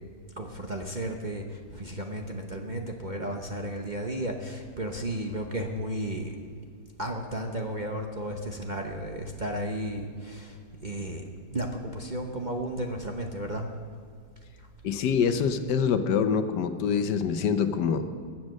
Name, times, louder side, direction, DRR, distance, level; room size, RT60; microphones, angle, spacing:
voice 1, 0.3-6.4 7.0-11.3 11.5-13.7, right 1 dB, 35° right, 2 dB, 0.8 m, -33 dB
voice 2, 14.8-18.0, left 6 dB, 75° left, 9 dB, 1.4 m, -25 dB
21.0 x 7.6 x 6.4 m, 2.2 s
omnidirectional pair, 1.8 m